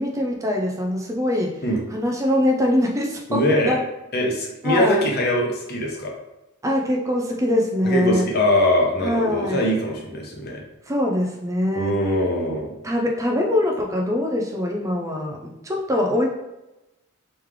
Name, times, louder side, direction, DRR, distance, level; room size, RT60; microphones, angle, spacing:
voice 1, 0.0-1.6 1.9-3.8 4.6-5.0 6.6-8.3 9.0-9.6 10.8-12.0 12.8-16.3, left 1 dB, 15° right, 0 dB, 0.4 m, -23 dB
voice 2, 3.3-3.8 4.1-6.1 7.8-10.6 11.7-12.7, left 1 dB, 45° left, 0 dB, 0.8 m, -22 dB
3.2 x 3.1 x 3.6 m, 0.98 s
head